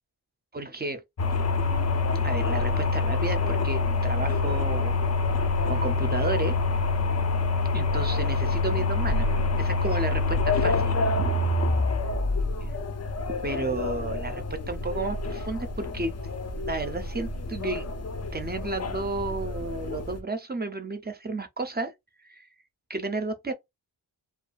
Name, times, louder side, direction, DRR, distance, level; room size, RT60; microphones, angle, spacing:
voice 1, 0.5-1.0 2.2-4.9 5.3-6.6 7.7-9.3 9.6-11.0 12.6-12.7 13.4-16.2 16.6-17.9 18.3-21.9 22.3-22.5 22.9-23.5, right 3 dB, 25° right, 0.4 m, -32 dB
sound 1, 1.2-20.2, left 3 dB, 40° left, 0.4 m, -26 dB
2.3 x 2.3 x 2.3 m
wide cardioid pair, 90°, 44 cm